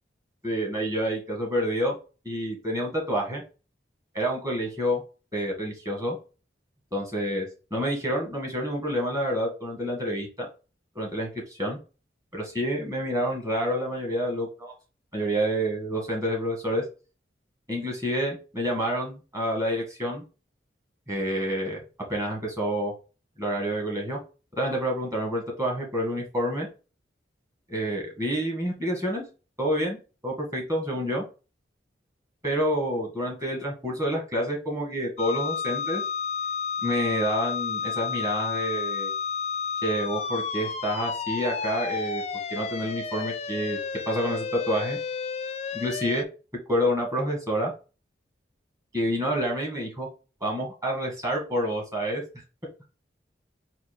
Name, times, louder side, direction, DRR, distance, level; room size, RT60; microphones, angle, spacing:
voice 1, 0.4-2.0 2.2-3.4 4.1-5.0 5.3-6.2 6.9-10.5 10.9-11.8 12.3-14.7 15.1-16.8 17.7-20.2 21.1-21.8 22.1-22.9 23.4-24.2 24.6-26.7 27.7-29.2 29.6-30.0 30.2-31.2 32.4-36.0 36.8-39.1 39.8-42.2 42.5-43.8 44.0-45.0 45.7-46.2 46.7-47.7 48.9-50.1 50.4-52.2, equal, 20° right, -2 dB, 1.7 m, -28 dB
sound 1, 35.2-46.2, left 6 dB, 35° left, 0.3 m, -31 dB
4.3 x 2.6 x 4.5 m, 0.33 s
head